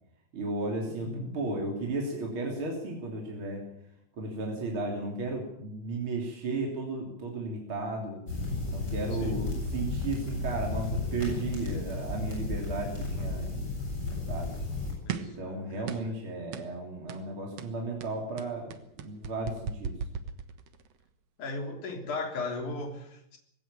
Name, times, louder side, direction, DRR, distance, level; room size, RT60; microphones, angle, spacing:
voice 1, 0.3-3.7 4.2-8.2 8.7-13.5 14.3-14.6 15.1-20.0, right 2 dB, 30° right, 0 dB, 3.5 m, -34 dB
voice 2, 0.9-1.2 9.2-9.4 15.0-16.1 21.4-23.4, left 3 dB, 50° left, 4 dB, 4.6 m, -37 dB
sound 1, 8.3-14.9, left 2 dB, 20° left, 7.9 m, -33 dB
sound 2, 15.1-15.4 15.9-16.2 16.5-16.7 17.1-17.3 17.6-20.9, right 7 dB, 75° right, 1.5 m, -37 dB
20.5 x 16.5 x 8.9 m, 0.74 s
omnidirectional pair, 4.9 m